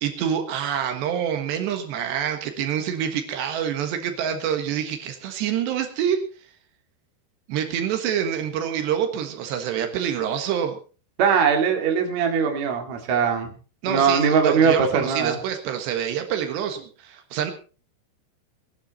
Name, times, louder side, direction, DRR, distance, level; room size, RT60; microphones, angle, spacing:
voice 1, 0.0-6.2 7.5-10.8 13.8-17.5, right 9 dB, 80° right, 6 dB, 3.7 m, -26 dB
voice 2, 11.2-13.5 13.8-15.4, right 6 dB, 45° right, 4 dB, 3.3 m, -21 dB
20.0 x 12.0 x 4.1 m, 0.37 s
omnidirectional pair, 4.9 m